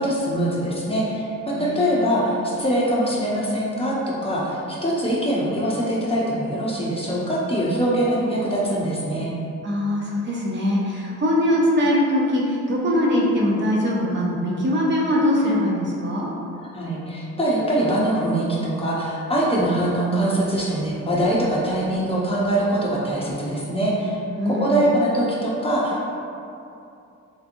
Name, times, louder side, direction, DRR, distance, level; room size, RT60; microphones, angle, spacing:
voice 1, 0.0-9.3 16.6-24.2 24.5-26.0, right 1 dB, 20° left, -5 dB, 0.6 m, -23 dB
voice 2, 1.6-2.0 9.6-16.3 24.4-24.9, left 1 dB, 40° right, -4 dB, 0.6 m, -22 dB
3.3 x 2.9 x 2.5 m, 2.6 s
cardioid pair, 90°, 30 cm